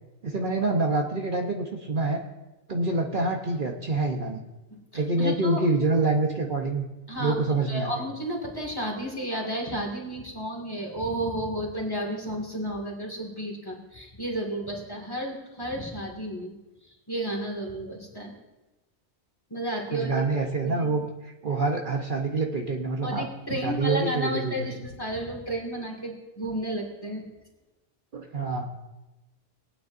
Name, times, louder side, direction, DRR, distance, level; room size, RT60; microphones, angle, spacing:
voice 1, 0.2-2.2 2.7-4.4 4.9-6.8 7.2-8.0 19.9-21.0 21.4-24.6 28.1-28.7, right 3 dB, 50° right, 1 dB, 1.1 m, -26 dB
voice 2, 4.9-5.6 7.1-16.5 17.1-18.3 19.5-20.2 20.6-21.0 23.0-27.2, right 1 dB, 20° left, -1 dB, 2.1 m, -32 dB
21.5 x 9.2 x 2.6 m, 1.1 s
omnidirectional pair, 1.2 m